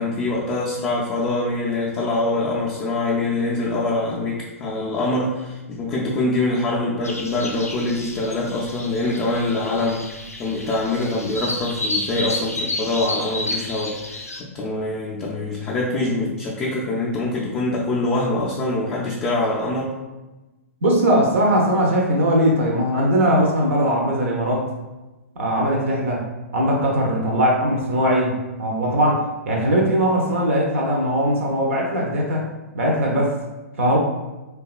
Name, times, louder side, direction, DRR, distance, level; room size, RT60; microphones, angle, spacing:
voice 1, 0.0-20.0, left 2 dB, 20° left, -4 dB, 0.3 m, -24 dB
sound 1, 7.0-14.4, left 2 dB, 90° left, 0.4 m, -31 dB
voice 2, 20.8-24.7 25.4-26.2 26.5-28.3 28.6-32.5 32.7-33.3 33.8-34.0, equal, 60° right, -1 dB, 0.5 m, -20 dB
2.8 x 2.3 x 2.3 m, 1.1 s
figure-of-eight pair, 110°, 8 cm